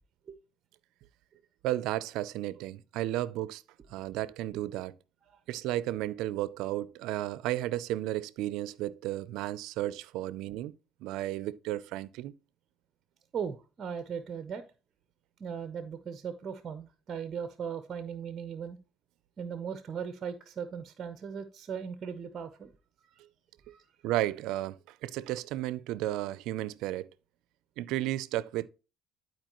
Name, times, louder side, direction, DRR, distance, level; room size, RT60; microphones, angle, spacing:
voice 1, 1.6-3.6 3.9-4.9 5.5-10.7 11.0-12.3 24.0-27.1 27.8-28.7, right 14 dB, 80° right, 0.4 m, -33 dB
voice 2, 13.3-14.6 15.4-18.8 19.4-22.7 23.7-23.8, right 7 dB, 40° right, 0.6 m, -38 dB
11.5 x 4.5 x 3.0 m
cardioid pair, 115°, 0 cm